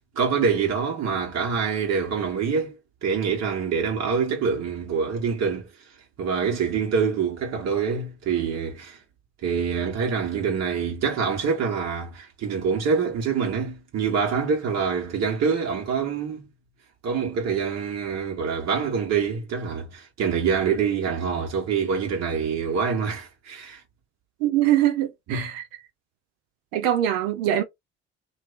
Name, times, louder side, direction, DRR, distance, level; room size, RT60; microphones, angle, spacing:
voice 1, 0.1-2.7 3.0-5.7 6.2-9.0 9.4-16.5 17.0-23.8 25.3-25.5, right 6 dB, 50° right, 1.6 m, -25 dB
voice 2, 24.4-25.6 26.7-27.6, right 12 dB, 70° right, 0.7 m, -23 dB
2.8 x 2.7 x 3.2 m
hypercardioid pair, 55°, 33 cm